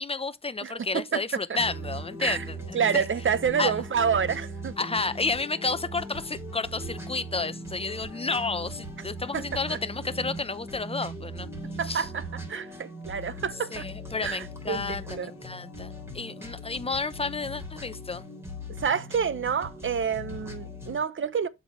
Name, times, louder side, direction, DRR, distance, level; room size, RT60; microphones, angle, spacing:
voice 1, 0.0-3.0 3.6-3.7 4.8-11.5 11.8-12.1 13.7-18.3, left 4 dB, 20° left, 0.8 m, -31 dB
voice 2, 0.6-1.2 2.2-2.4 2.7-4.7 9.3-9.4 11.8-12.2 12.5-13.9 14.2-15.3 18.8-21.5, right 7 dB, 40° right, 0.9 m, -28 dB
sound 1, 1.6-21.0, right 1 dB, 10° right, 3.7 m, -39 dB
7.7 x 5.5 x 3.2 m
cardioid pair, 90°, 31 cm